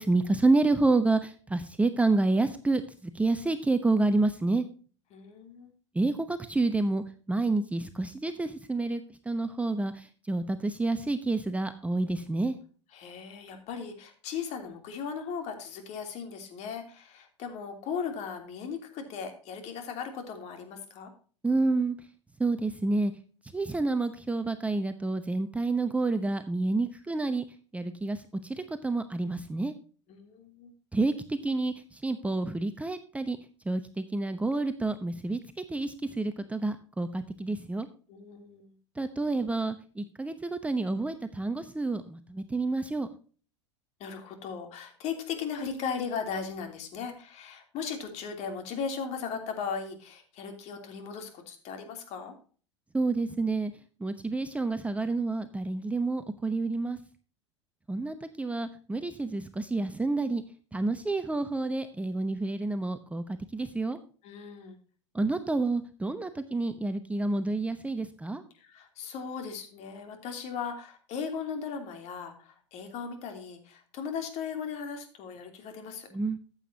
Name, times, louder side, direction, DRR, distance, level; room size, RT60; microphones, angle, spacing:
voice 1, 0.0-4.7 5.9-9.0 9.3-12.6 21.4-21.9 22.4-23.1 23.5-27.4 27.7-29.7 30.9-33.4 33.7-37.9 39.0-43.1 52.9-53.7 54.0-57.0 57.9-60.4 60.7-64.0 65.1-68.4 76.1-76.4, right 3 dB, 10° right, 9 dB, 0.9 m, -29 dB
voice 2, 5.1-5.7 12.9-21.1 30.1-30.7 38.1-38.7 44.0-52.4 64.2-64.8 68.6-76.1, left 6 dB, 45° left, 5 dB, 3.1 m, -37 dB
14.0 x 8.1 x 2.8 m, 0.39 s
hypercardioid pair, 90°, 16 cm